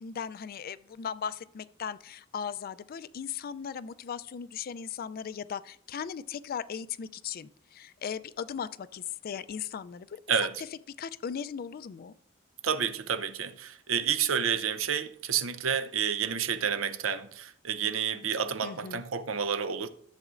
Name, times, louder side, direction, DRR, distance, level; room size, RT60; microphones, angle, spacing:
voice 1, 0.0-10.2 10.6-12.1 18.6-19.0, left 7 dB, 45° left, 0.3 m, -38 dB
voice 2, 10.3-10.6 12.6-19.9, right 7 dB, 90° right, 0.6 m, -30 dB
13.5 x 7.4 x 2.5 m
head